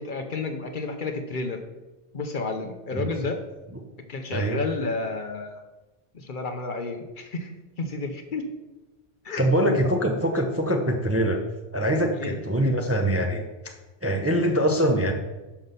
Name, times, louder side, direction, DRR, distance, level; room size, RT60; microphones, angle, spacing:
voice 1, 0.0-1.6 2.1-3.4 4.1-5.6 6.1-7.5 7.8-8.4 9.2-9.7 12.2-12.4, left 3 dB, 50° left, 5 dB, 0.8 m, -31 dB
voice 2, 4.3-4.6 9.4-11.4 11.7-13.8 14.0-15.1, right 1 dB, 15° right, 2 dB, 0.5 m, -23 dB
5.9 x 5.3 x 6.7 m, 1.1 s
omnidirectional pair, 1.2 m